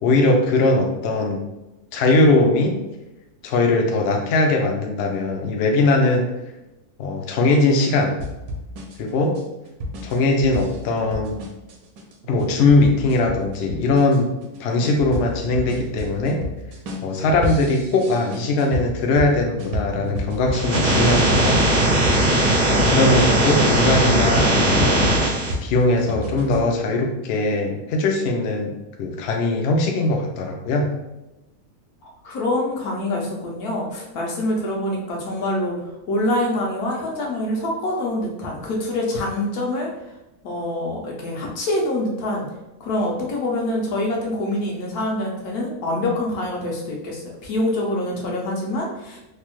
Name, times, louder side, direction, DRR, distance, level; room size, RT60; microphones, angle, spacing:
voice 1, 0.0-1.4 1.9-2.8 3.4-6.3 7.0-8.1 9.0-9.4 10.0-11.4 12.3-14.3 14.6-16.4 17.0-21.6 22.7-25.1 25.6-28.7 29.0-30.9, left 2 dB, 65° left, 2 dB, 0.6 m, -20 dB
sound 1, 8.2-22.7 23.2-26.7, equal, 75° right, 1.0 m, -31 dB
sound 2, 20.5-25.5, right 1 dB, 45° right, 0.7 m, -18 dB
voice 2, 32.0-35.8 36.1-39.9 40.4-42.5 42.8-49.2, left 1 dB, 85° left, -2 dB, 1.2 m, -25 dB
3.2 x 2.0 x 3.0 m, 0.97 s
omnidirectional pair, 1.6 m